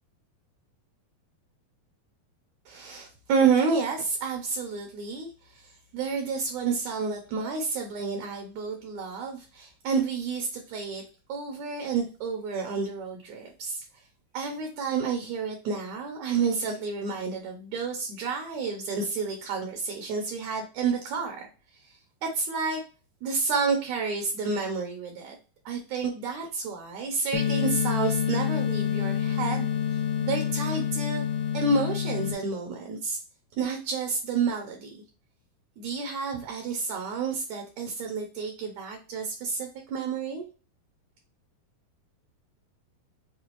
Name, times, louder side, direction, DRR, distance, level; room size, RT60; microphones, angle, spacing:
voice 1, 2.6-11.0 11.3-13.8 14.3-21.4 22.2-22.8 23.2-25.3 25.6-29.7 30.2-31.2 31.5-33.2 33.6-35.0 35.8-40.4, right 5 dB, 75° right, 2 dB, 1.8 m, -30 dB
sound 1, 27.3-32.3, left 9 dB, 85° left, 2.8 m, -27 dB
6.0 x 2.3 x 3.0 m, 0.33 s
omnidirectional pair, 4.3 m